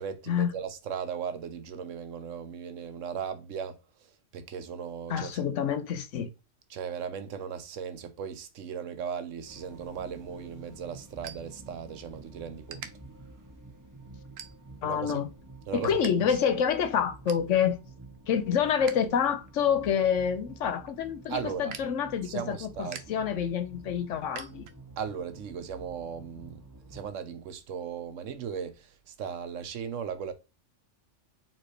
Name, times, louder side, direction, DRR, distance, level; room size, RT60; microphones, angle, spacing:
voice 1, 0.0-3.8 4.3-5.4 6.7-12.9 14.8-15.2 15.7-16.4 21.3-21.7 22.2-23.0 25.0-30.3, right 7 dB, 80° right, 1.1 m, -37 dB
voice 2, 5.1-6.3 14.8-15.3 15.7-17.8 18.3-24.6, left 8 dB, 80° left, 1.1 m, -27 dB
sound 1, 9.5-27.1, right 2 dB, 20° right, 0.7 m, -50 dB
sound 2, 10.2-12.2 12.7-12.9 13.5-13.7 14.4-14.9 15.3-16.1 16.4-16.5 16.9-17.5 18.0-19.1 19.4-25.1, right 7 dB, 60° right, 0.9 m, -46 dB
4.4 x 3.8 x 3.2 m
omnidirectional pair, 1.3 m